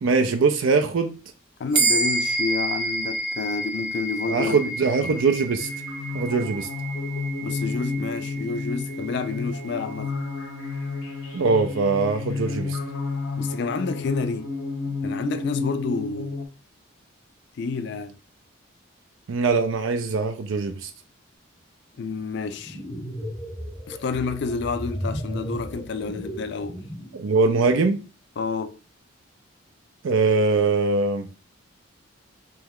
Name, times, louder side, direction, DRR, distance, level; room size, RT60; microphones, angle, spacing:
voice 1, 0.0-1.2 4.3-5.7 6.1-6.7 11.3-12.8 19.3-20.9 27.1-28.0 30.0-31.3, right 4 dB, 75° right, 0.4 m, -22 dB
voice 2, 1.6-4.7 7.4-10.1 13.4-14.5 15.0-16.4 17.6-18.1 22.0-22.8 23.9-26.8 28.4-28.8, left 4 dB, 55° left, 0.3 m, -29 dB
sound 1, 1.7-11.5, right 2 dB, 40° right, 0.8 m, -30 dB
sound 2, 5.6-16.5, left 3 dB, 80° left, 0.8 m, -31 dB
sound 3, 22.5-27.2, equal, ahead, 2.1 m, -34 dB
3.4 x 3.1 x 3.5 m
head